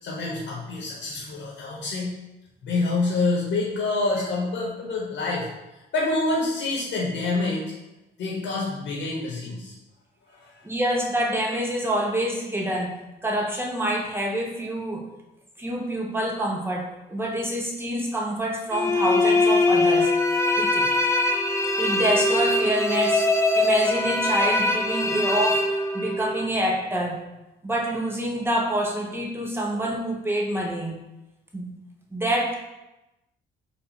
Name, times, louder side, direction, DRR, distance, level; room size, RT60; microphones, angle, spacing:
voice 1, 0.0-2.1 2.6-5.5 5.9-7.7 8.2-9.7 10.3-10.6, left 3 dB, 70° left, -4 dB, 1.3 m, -27 dB
voice 2, 10.6-15.0 15.6-20.1 20.5-20.9 21.8-23.3 23.5-27.2 27.6-31.0 31.5-31.7 32.1-32.5, right 1 dB, 10° right, -1 dB, 1.0 m, -27 dB
sound 1, 18.7-26.4, left 2 dB, 15° left, 0.5 m, -22 dB
4.1 x 2.6 x 4.6 m, 0.98 s
cardioid pair, 90°, 20 cm